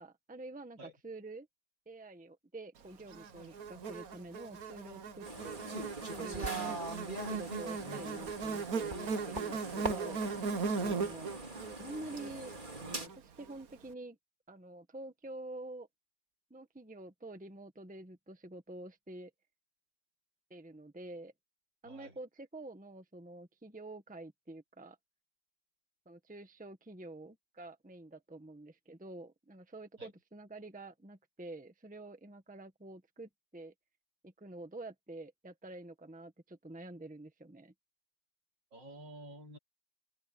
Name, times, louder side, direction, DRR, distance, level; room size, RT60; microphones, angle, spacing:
voice 1, 0.0-1.5 1.8-5.6 6.1-6.8 7.3-8.9 9.3-10.2 10.8-11.3 11.8-14.2 14.5-15.9 16.5-19.3 20.5-21.3 21.8-25.0 26.0-33.7 34.2-37.7, right 2 dB, 5° right, 1.3 m, -48 dB
Buzz, 3.1-13.5, right 4 dB, 55° right, 1.6 m, -39 dB
sound 1, 5.2-13.1, right 3 dB, 25° right, 2.8 m, -41 dB
voice 2, 7.8-8.6 10.8-11.0 21.8-22.2 30.0-30.1 38.7-39.6, right 1 dB, 70° right, 4.7 m, -51 dB
omnidirectional pair, 2.0 m